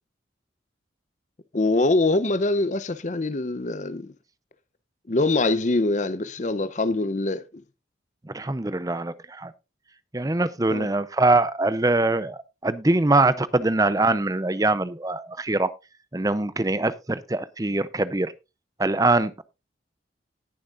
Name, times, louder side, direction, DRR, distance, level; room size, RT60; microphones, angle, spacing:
voice 1, 1.5-4.1 5.1-7.4 10.7-10.9, left 2 dB, 40° left, 0.6 m, -23 dB
voice 2, 8.3-9.5 10.1-15.7 16.1-18.3 18.8-19.4, right 2 dB, 20° right, 0.6 m, -23 dB
18.5 x 7.1 x 2.5 m
head